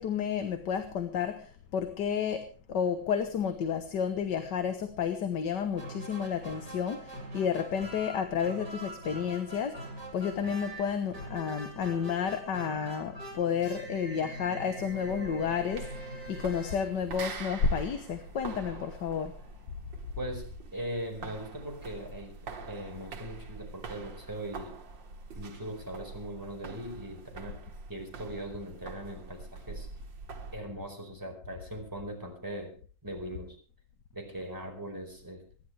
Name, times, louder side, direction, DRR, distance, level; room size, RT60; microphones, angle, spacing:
voice 1, 0.0-9.8 10.1-19.3, left 7 dB, 70° left, 8 dB, 1.8 m, -31 dB
sound 1, 5.7-17.6, right 1 dB, 65° right, 4.6 m, -43 dB
sound 2, 14.8-30.6, right 4 dB, 85° right, 2.4 m, -45 dB
voice 2, 20.2-24.7 25.3-27.6 27.9-29.9 30.5-32.7 33.0-33.6 34.1-35.4, right 1 dB, 10° right, 1 dB, 4.7 m, -40 dB
26.0 x 11.5 x 3.3 m, 0.39 s
omnidirectional pair, 2.0 m